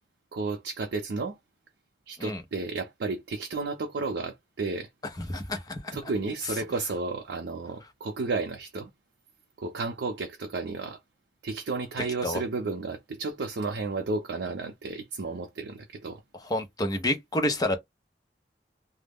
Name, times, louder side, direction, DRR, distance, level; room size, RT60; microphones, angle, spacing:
voice 1, 0.3-1.4 2.1-4.9 5.9-8.9 9.6-11.0 11.4-16.2, right 3 dB, 75° right, 0.5 m, -32 dB
voice 2, 5.2-5.9 12.2-12.4 16.4-17.8, left 1 dB, 20° left, 0.6 m, -29 dB
2.3 x 2.0 x 3.4 m
head